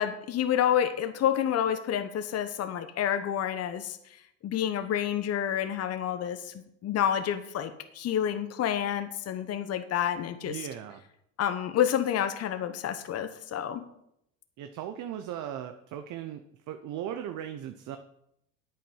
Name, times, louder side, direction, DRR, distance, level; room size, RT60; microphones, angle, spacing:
voice 1, 0.0-4.0 4.4-6.5 6.8-10.6 11.4-13.8, left 10 dB, 40° left, 10 dB, 1.0 m, -29 dB
voice 2, 10.4-11.0 14.6-18.0, right 10 dB, 50° right, 7 dB, 0.9 m, -38 dB
9.1 x 8.6 x 5.5 m, 0.76 s
hypercardioid pair, 80°, 38 cm